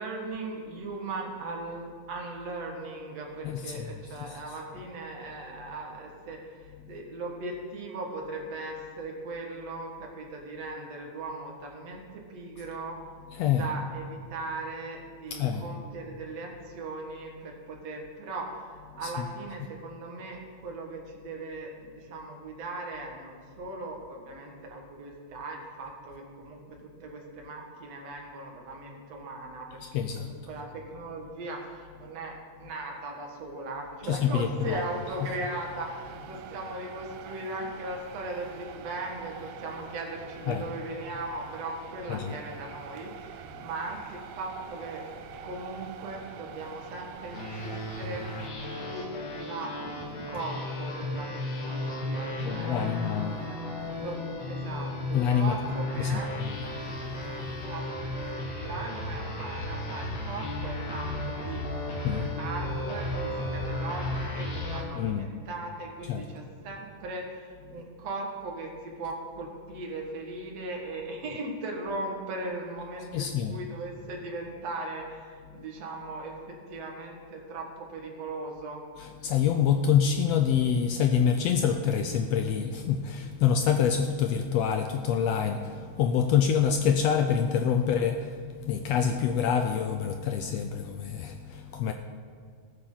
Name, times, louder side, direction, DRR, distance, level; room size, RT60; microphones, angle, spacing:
voice 1, 0.0-13.0 13.6-45.1 45.4-49.7 50.0-53.6 54.0-56.3 57.6-57.8 58.2-78.8, right 2 dB, 60° right, 1 dB, 2.7 m, -38 dB
voice 2, 3.4-3.9 4.2-4.4 13.4-13.7 15.3-15.7 19.0-19.3 29.8-30.3 34.0-34.8 35.2-35.3 40.5-40.6 42.1-42.4 43.6-43.7 48.7-48.9 52.4-53.4 55.1-55.7 56.0-57.7 62.0-62.3 64.9-65.3 66.1-66.2 73.1-73.6 79.0-91.9, left 8 dB, 80° left, 6 dB, 1.5 m, -27 dB
sound 1, 34.6-48.5, right 8 dB, 85° right, 2.1 m, -45 dB
sound 2, 47.3-64.8, left 1 dB, 60° left, 2.8 m, -34 dB
18.5 x 8.8 x 3.9 m, 2.1 s
omnidirectional pair, 3.4 m